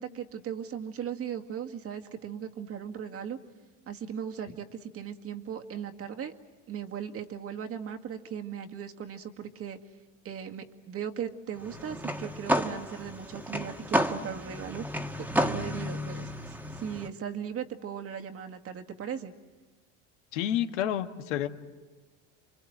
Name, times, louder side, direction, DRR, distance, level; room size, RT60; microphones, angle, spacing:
voice 1, 0.0-3.4 3.9-6.3 6.7-9.8 10.2-14.9 15.2-19.3, right 8 dB, 40° right, 4 dB, 2.1 m, -38 dB
sound 1, 11.6-17.1, equal, 5° right, 1.7 m, -31 dB
voice 2, 20.3-21.5, left 11 dB, 80° left, 7 dB, 1.8 m, -29 dB
28.5 x 24.5 x 8.0 m, 1.3 s
supercardioid pair, 100°, 36 cm